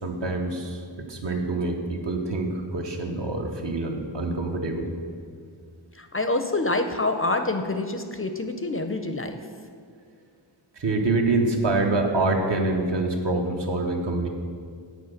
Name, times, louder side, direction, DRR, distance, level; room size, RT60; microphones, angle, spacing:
voice 1, 0.0-4.9 10.7-14.3, right 2 dB, 65° right, 2 dB, 1.1 m, -26 dB
voice 2, 6.0-9.4, left 2 dB, 30° left, 7 dB, 0.4 m, -26 dB
8.2 x 4.5 x 6.4 m, 2.2 s
wide cardioid pair, 100°, 47 cm